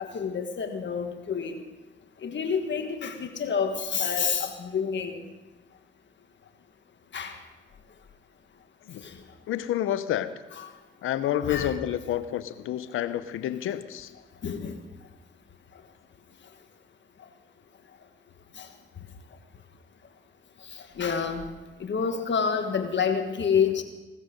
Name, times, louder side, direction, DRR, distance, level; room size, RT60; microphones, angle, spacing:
voice 1, 0.0-1.6 2.2-5.2 7.1-7.4 9.0-9.1 10.6-10.7 11.2-11.7 14.4-14.8 18.6-18.7 20.7-21.4 21.8-23.8, left 6 dB, 60° left, 6 dB, 1.6 m, -28 dB
voice 2, 9.5-10.3 11.0-14.1, left 11 dB, 85° left, 13 dB, 0.8 m, -29 dB
17.5 x 13.5 x 5.3 m, 1.1 s
supercardioid pair, 55°, 21 cm